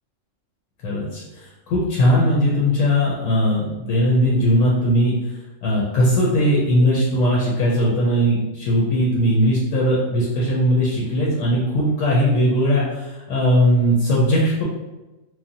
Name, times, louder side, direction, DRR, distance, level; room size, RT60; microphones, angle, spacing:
voice 1, 0.8-5.1 5.6-14.6, equal, 85° left, -5 dB, 1.0 m, -19 dB
3.1 x 2.1 x 2.7 m, 1.1 s
omnidirectional pair, 1.4 m